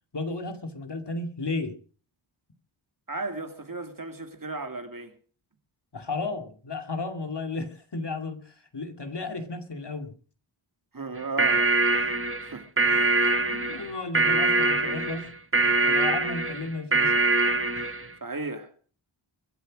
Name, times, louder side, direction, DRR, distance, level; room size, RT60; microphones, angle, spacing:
voice 1, 0.1-1.7 5.9-10.1 12.0-12.1 12.8-15.3 15.6-17.1 17.8-17.9, left 3 dB, 55° left, 2.4 m, -34 dB
voice 2, 3.1-5.1 10.9-11.7 12.4-12.7 18.2-18.7, right 3 dB, 45° right, 2.4 m, -34 dB
sound 1, 11.2-18.1, right 3 dB, 25° right, 1.5 m, -23 dB
23.5 x 8.2 x 6.3 m
wide cardioid pair, 55°, 48 cm